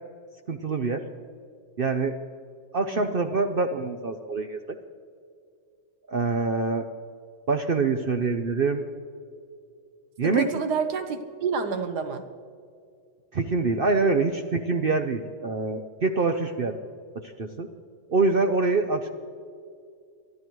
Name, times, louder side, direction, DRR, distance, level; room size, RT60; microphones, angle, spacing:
voice 1, 0.5-1.0 1.8-2.2 2.7-4.6 6.1-6.9 7.5-8.8 10.2-10.5 13.3-16.8 17.2-17.7 18.1-19.1, right 3 dB, 60° right, 6 dB, 0.6 m, -25 dB
voice 2, 10.2-12.2, right 5 dB, 75° right, 7 dB, 1.6 m, -29 dB
23.5 x 13.5 x 3.1 m, 2.3 s
omnidirectional pair, 1.8 m